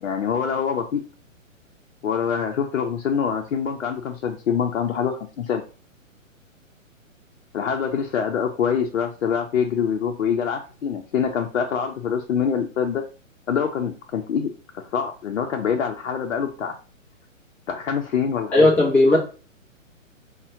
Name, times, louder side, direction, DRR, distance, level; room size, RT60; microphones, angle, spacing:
voice 1, 0.0-1.0 2.0-5.6 7.5-13.0 13.5-14.5 14.9-16.8 17.7-18.7, left 7 dB, 60° left, 0.6 m, -25 dB
voice 2, 18.5-19.2, left 2 dB, 5° left, 0.5 m, -15 dB
5.4 x 2.2 x 2.6 m
figure-of-eight pair, 125°, 40 cm